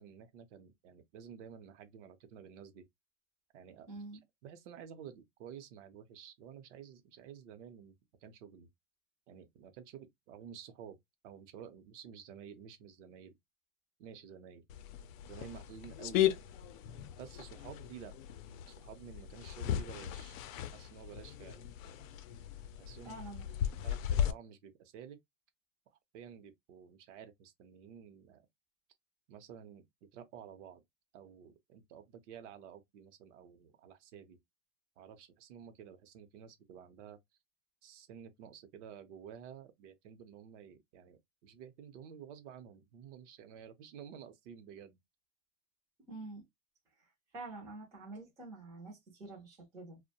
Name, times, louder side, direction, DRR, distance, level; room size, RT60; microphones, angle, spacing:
voice 1, 0.0-2.8 3.5-4.0 4.4-7.9 8.2-8.7 9.3-11.0 11.2-13.3 14.0-14.6 15.3-16.3 17.2-18.2 18.7-20.4 20.7-21.7 22.8-23.2 23.8-25.2 26.1-28.5 29.3-29.8 30.1-30.8 31.1-34.4 35.0-37.2 37.8-45.0, right 8 dB, 65° right, 0.7 m, -51 dB
voice 2, 3.9-4.2 23.0-23.8 46.1-46.4 47.3-50.0, right 2 dB, 10° right, 0.3 m, -47 dB
sound 1, 14.7-24.3, left 11 dB, 85° left, 0.5 m, -37 dB
2.5 x 2.1 x 2.7 m
supercardioid pair, 175°, 38 cm